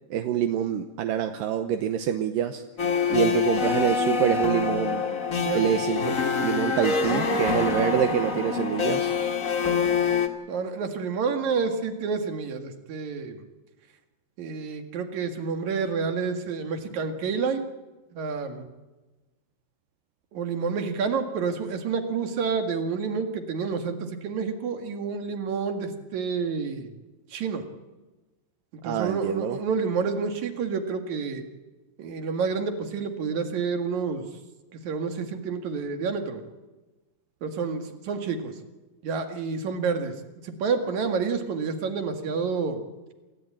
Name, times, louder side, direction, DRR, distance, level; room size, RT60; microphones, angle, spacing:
voice 1, 0.1-2.6 3.1-5.0 5.5-9.1 28.8-29.6, right 9 dB, 75° right, 8 dB, 2.2 m, -26 dB
sound 1, 2.8-10.3, left 5 dB, 75° left, 0.7 m, -25 dB
voice 2, 3.1-3.4 5.4-5.8 10.5-13.4 14.4-17.7 18.1-18.7 20.3-26.9 27.3-27.6 28.8-31.4 32.0-34.2 34.7-36.4 37.4-38.5 39.0-40.1 40.4-42.8, right 5 dB, 55° right, 6 dB, 2.7 m, -29 dB
27.5 x 15.0 x 8.8 m, 1.2 s
omnidirectional pair, 4.7 m